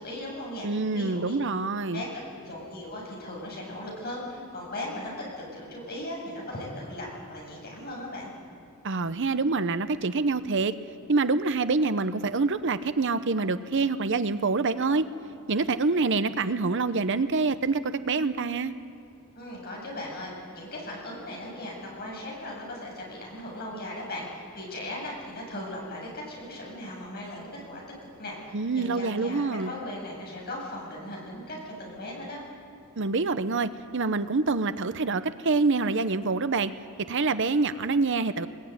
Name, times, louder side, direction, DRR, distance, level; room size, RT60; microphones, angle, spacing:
voice 1, 0.0-1.4 1.9-8.3 19.3-27.8 28.2-32.4, left 1 dB, 45° left, -2 dB, 7.6 m, -38 dB
voice 2, 0.6-2.0 8.8-10.7 11.1-15.1 15.5-18.7 28.5-29.7 33.0-36.7 37.1-38.5, right 3 dB, 60° right, 12 dB, 0.8 m, -26 dB
21.5 x 20.5 x 9.5 m, 2.5 s
head